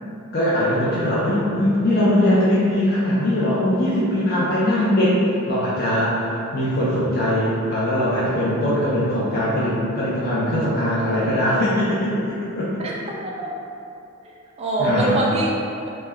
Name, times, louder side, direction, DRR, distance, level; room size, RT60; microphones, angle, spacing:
voice 1, 0.3-5.2 5.5-12.7 14.8-15.2, left 1 dB, 45° left, -8 dB, 0.5 m, -21 dB
voice 2, 12.8-13.5 14.6-15.9, right 1 dB, 30° right, -4 dB, 0.4 m, -24 dB
3.1 x 2.1 x 3.5 m, 2.7 s
head